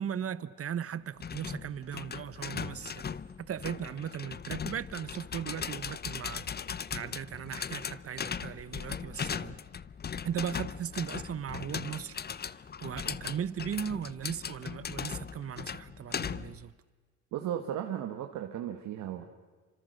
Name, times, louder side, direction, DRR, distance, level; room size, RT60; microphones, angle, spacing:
voice 1, 0.0-3.2 3.5-6.5 6.9-9.6 10.2-16.7, right 8 dB, 50° right, 1.2 m, -37 dB
sound 1, 1.2-16.6, left 7 dB, 35° left, 0.7 m, -38 dB
voice 2, 17.3-19.3, right 10 dB, 90° right, 1.7 m, -35 dB
29.5 x 26.0 x 6.7 m
cardioid pair, 90°, 30 cm